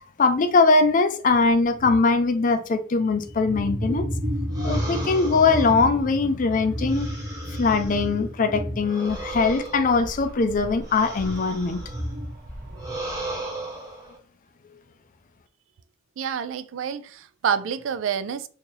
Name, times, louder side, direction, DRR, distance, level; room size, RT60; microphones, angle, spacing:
voice 1, 0.2-4.1 4.6-7.1 7.6-11.8, left 4 dB, 40° left, 0.4 m, -21 dB
sound 1, 1.3-1.4 1.7-2.1 3.1-13.0, equal, 45° right, 0.8 m, -32 dB
sound 2, 4.5-8.2 8.8-12.1 12.7-14.2, right 2 dB, 15° right, 1.1 m, -37 dB
voice 2, 16.2-18.5, right 7 dB, 70° right, 0.3 m, -28 dB
2.7 x 2.6 x 3.8 m
head